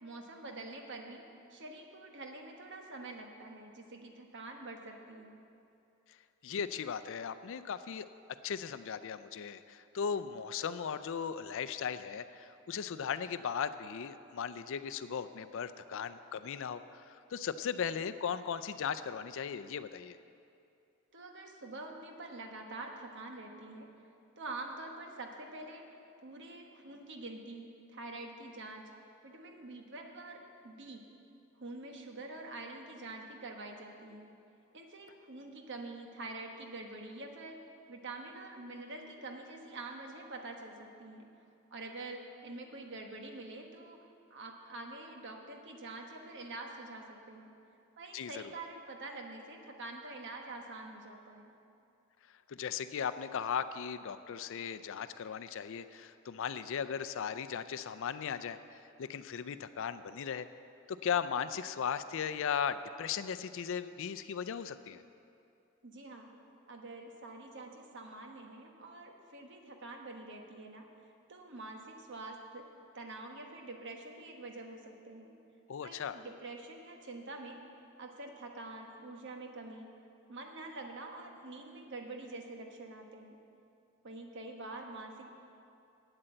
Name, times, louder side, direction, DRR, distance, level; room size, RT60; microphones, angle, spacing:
voice 1, 0.0-1.2 1.5-5.4 21.1-23.9 24.4-25.9 26.2-28.8 29.2-31.1 31.6-34.3 34.7-37.6 37.9-41.3 41.7-44.0 44.3-47.5 48.0-51.5 65.8-66.3 66.7-70.9 71.3-72.6 72.9-75.4 75.8-77.6 78.0-79.9 80.3-83.4 84.0-85.3, right 2 dB, 60° right, 3 dB, 1.2 m, -46 dB
voice 2, 6.4-8.1 8.4-20.2 48.1-48.5 52.5-60.5 60.9-65.0 75.7-76.2, left 7 dB, 65° left, 13 dB, 0.4 m, -37 dB
8.9 x 8.3 x 7.8 m, 2.6 s
head